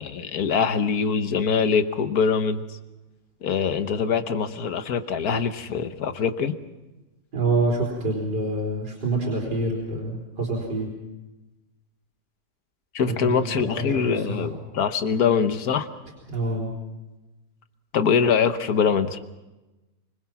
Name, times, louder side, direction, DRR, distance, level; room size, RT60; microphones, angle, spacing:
voice 1, 0.0-2.6 3.4-6.6 12.9-15.9 17.9-19.2, left 6 dB, 65° left, 10 dB, 1.5 m, -23 dB
voice 2, 7.3-10.9 13.1-14.5 16.3-16.7, right 2 dB, 85° right, -4 dB, 4.4 m, -26 dB
25.0 x 21.0 x 5.9 m, 1.1 s
omnidirectional pair, 1.8 m